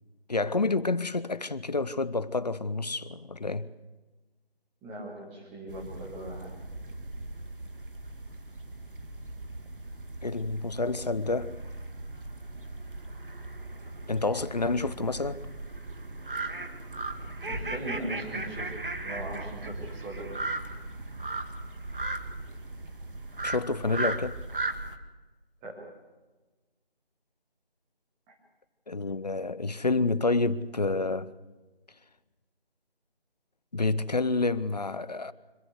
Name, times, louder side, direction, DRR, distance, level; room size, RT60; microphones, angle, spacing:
voice 1, 0.3-3.7 10.2-11.6 14.1-15.4 23.4-24.4 28.9-31.3 33.7-35.3, left 3 dB, 45° left, 0.8 m, -28 dB
voice 2, 4.8-6.5 17.5-20.3 25.6-25.9 28.3-28.4, right 1 dB, 5° right, 1.8 m, -39 dB
sound 1, 5.7-25.0, right 2 dB, 60° right, 2.0 m, -37 dB
25.5 x 14.5 x 8.1 m
figure-of-eight pair, 165°, 30 cm